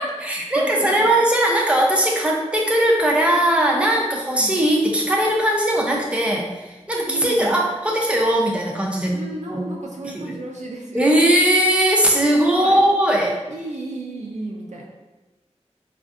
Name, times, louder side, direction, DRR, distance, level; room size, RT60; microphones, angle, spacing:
voice 1, 0.0-9.2 9.5-9.6 10.0-10.4 10.9-13.4, right 1 dB, 10° right, -1 dB, 0.6 m, -19 dB
voice 2, 0.5-1.1 4.4-4.6 7.1-7.6 9.1-11.0 12.5-12.8 13.2-14.9, right 2 dB, 90° right, -1 dB, 0.5 m, -33 dB
4.3 x 2.5 x 2.5 m, 1.1 s
wide cardioid pair, 55°, 12 cm